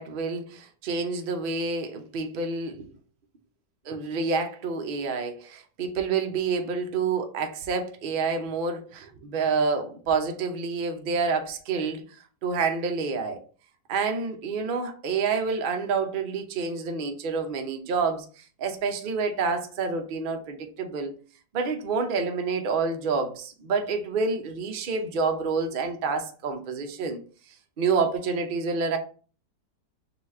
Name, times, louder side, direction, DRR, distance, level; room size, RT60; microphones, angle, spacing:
voice 1, 0.0-2.9 3.9-12.0 12.4-13.4 13.9-21.1 21.5-27.2 27.8-29.0, right 4 dB, 60° right, 4 dB, 0.5 m, -28 dB
4.0 x 2.4 x 4.2 m, 0.38 s
omnidirectional pair, 1.8 m